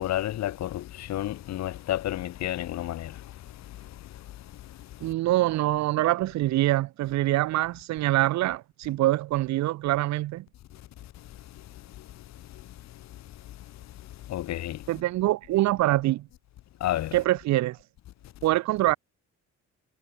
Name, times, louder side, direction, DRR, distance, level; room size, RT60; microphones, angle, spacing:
voice 1, 0.0-3.1 14.3-14.8 16.8-17.2, left 13 dB, 60° left, 0.7 m, -30 dB
voice 2, 5.0-10.4 14.9-16.3 17.1-17.8 18.4-18.9, right 16 dB, 65° right, 0.5 m, -24 dB
cardioid pair, 90°, 30 cm